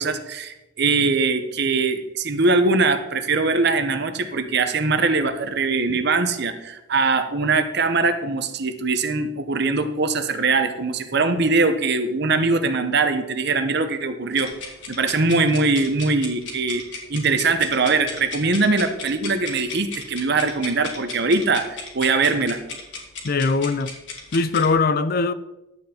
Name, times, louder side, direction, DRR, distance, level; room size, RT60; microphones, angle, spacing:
voice 1, 0.0-14.5 14.9-16.8 17.1-22.6, right 3 dB, 55° right, 0.9 m, -22 dB
sound 1, 14.3-24.7, left 4 dB, 65° left, 2.3 m, -36 dB
voice 2, 23.2-23.9 24.3-25.3, left 4 dB, 45° left, 0.4 m, -21 dB
11.5 x 7.9 x 4.3 m
head